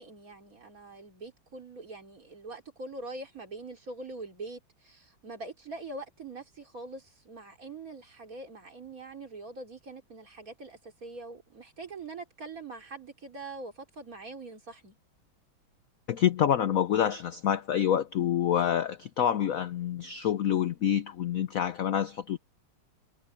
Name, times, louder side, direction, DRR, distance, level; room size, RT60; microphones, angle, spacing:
voice 1, 0.0-15.0, right 3 dB, 40° right, 3.7 m, -43 dB
voice 2, 16.1-22.4, left 10 dB, 75° left, 0.8 m, -27 dB
omnidirectional pair, 2.3 m